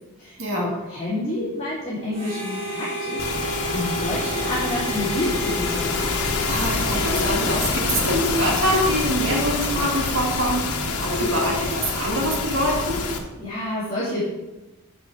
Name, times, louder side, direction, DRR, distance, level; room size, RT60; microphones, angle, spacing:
voice 1, 0.2-6.0 13.4-14.3, left 1 dB, 20° left, -11 dB, 2.8 m, -28 dB
Harmonica, 2.1-8.5, right 1 dB, 25° right, 2.8 m, -32 dB
sound 1, 3.2-13.2, left 4 dB, 85° left, 1.1 m, -26 dB
voice 2, 6.5-13.0, equal, 60° right, -1 dB, 2.1 m, -24 dB
8.5 x 6.0 x 4.9 m, 1.0 s
head